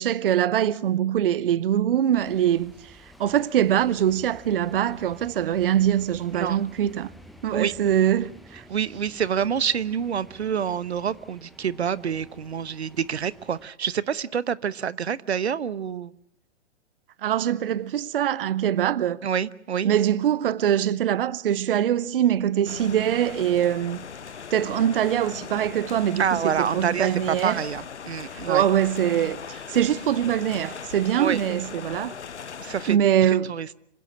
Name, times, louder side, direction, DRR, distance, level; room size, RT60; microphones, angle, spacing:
voice 1, 0.0-7.1 7.4-8.6 17.2-19.2 19.8-24.0 24.5-27.6 28.3-32.2 32.9-33.5, right 10 dB, 50° right, 0.8 m, -23 dB
sound 1, 2.1-13.7, equal, ahead, 1.2 m, -50 dB
voice 2, 8.7-16.1 19.2-19.9 26.2-28.6 31.2-31.4 32.6-33.0 33.3-33.7, right 8 dB, 65° right, 1.1 m, -27 dB
sound 2, 22.7-33.0, left 7 dB, 70° left, 1.1 m, -39 dB
26.5 x 16.5 x 7.4 m
figure-of-eight pair, 120°, 35 cm